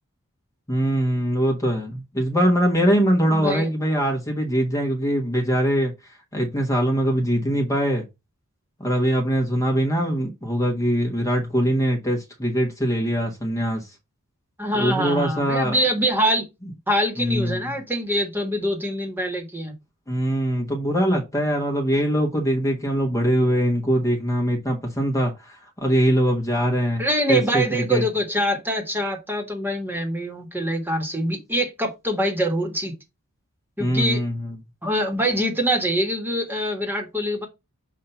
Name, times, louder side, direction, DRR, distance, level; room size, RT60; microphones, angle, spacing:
voice 1, 0.7-5.9 6.3-8.1 8.8-13.8 14.7-15.8 17.2-17.6 20.1-28.0 33.8-34.6, equal, 15° left, 1.4 m, -22 dB
voice 2, 3.3-3.7 14.6-16.5 16.9-19.7 27.0-33.0 33.8-34.2 34.8-37.5, equal, 10° right, 1.6 m, -24 dB
7.4 x 2.8 x 5.6 m
head